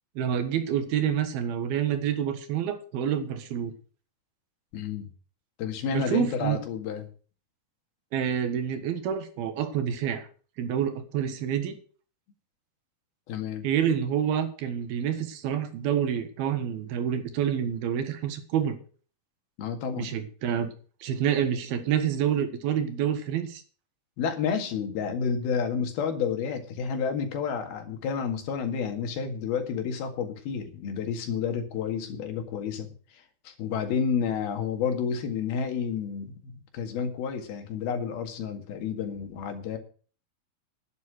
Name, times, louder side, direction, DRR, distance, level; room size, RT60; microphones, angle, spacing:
voice 1, 0.2-3.7 5.9-6.6 8.1-10.3 10.6-11.8 13.6-18.8 20.0-20.7 21.0-23.6, right 9 dB, 85° right, 9 dB, 3.4 m, -28 dB
voice 2, 4.7-5.1 5.6-7.1 13.3-13.7 19.6-20.1 24.2-32.9 33.5-39.8, left 6 dB, 85° left, 6 dB, 3.8 m, -30 dB
11.5 x 9.6 x 6.3 m, 0.40 s
omnidirectional pair, 4.3 m